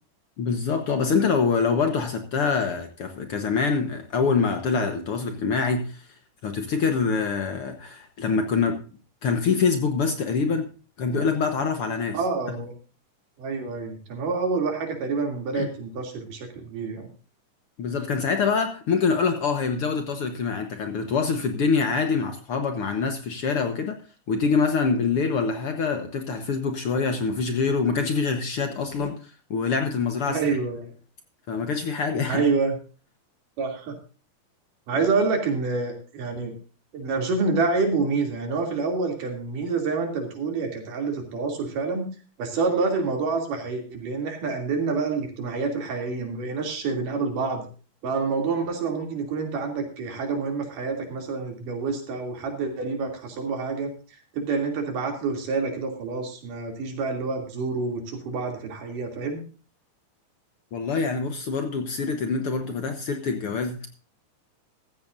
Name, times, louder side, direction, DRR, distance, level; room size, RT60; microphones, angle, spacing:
voice 1, 0.4-6.1 6.4-8.8 9.2-10.7 11.0-12.2 12.5-12.6 15.5-15.7 17.8-24.0 24.3-30.4 31.5-32.5 60.7-63.9, left 5 dB, 60° left, 1.6 m, -25 dB
voice 2, 12.1-12.7 13.4-17.1 30.3-30.9 32.3-32.8 33.6-34.0 34.9-36.5 36.9-42.1 42.4-47.7 48.0-53.9 54.3-59.4, right 4 dB, 80° right, 4.4 m, -27 dB
15.0 x 14.5 x 2.6 m
omnidirectional pair, 3.7 m